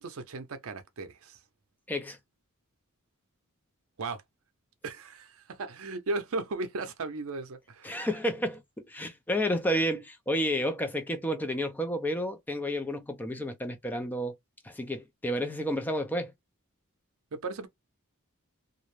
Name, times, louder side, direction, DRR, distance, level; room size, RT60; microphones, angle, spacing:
voice 1, 0.0-1.4 4.0-4.2 4.8-8.1 17.3-17.7, right 3 dB, 65° right, 0.5 m, -36 dB
voice 2, 7.8-8.6 8.9-14.3 14.6-16.3, equal, 10° left, 0.4 m, -31 dB
2.5 x 2.0 x 3.0 m
head